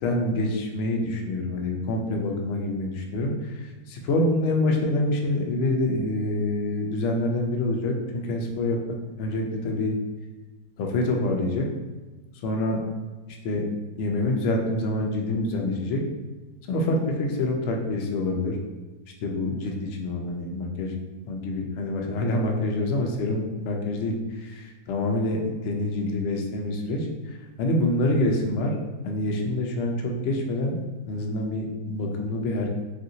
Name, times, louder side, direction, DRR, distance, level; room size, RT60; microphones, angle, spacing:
voice 1, 0.0-10.0 10.8-11.6 12.4-12.8 13.3-13.7 14.0-16.0 16.7-18.6 19.2-20.9 21.3-28.7 29.0-32.8, left 2 dB, 75° left, 1 dB, 0.6 m, -26 dB
3.2 x 2.6 x 2.7 m, 1.3 s
omnidirectional pair, 1.7 m